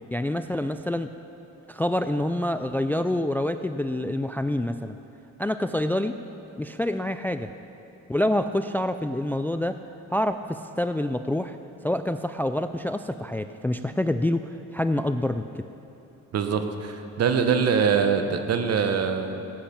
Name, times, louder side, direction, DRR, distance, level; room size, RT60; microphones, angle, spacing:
voice 1, 0.1-1.1 1.7-5.0 5.4-6.2 6.6-7.5 8.1-9.8 10.1-11.6 11.8-15.7, left 1 dB, 5° left, 10 dB, 0.3 m, -27 dB
voice 2, 16.3-19.4, right 6 dB, 55° right, 7 dB, 1.2 m, -23 dB
15.5 x 8.9 x 5.9 m, 3.0 s
cardioid pair, 90°, 30 cm